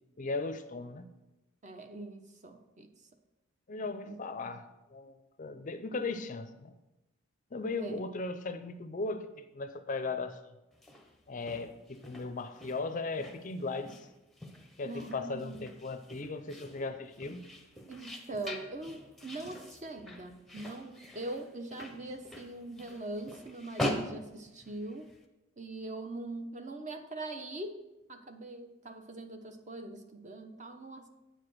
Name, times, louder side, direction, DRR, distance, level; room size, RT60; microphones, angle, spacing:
voice 1, 0.2-1.1 3.7-4.6 4.9-5.1 5.4-6.7 7.5-10.4 11.3-14.1 14.8-17.4, left 3 dB, 40° left, 9 dB, 0.5 m, -37 dB
voice 2, 1.6-2.9 4.0-4.2 7.8-8.1 14.8-15.7 17.9-25.1 25.6-27.8 28.1-31.1, right 2 dB, 35° right, 6 dB, 0.8 m, -42 dB
sound 1, 10.7-25.2, left 1 dB, ahead, 0.8 m, -43 dB
9.0 x 4.9 x 6.2 m, 1.0 s
head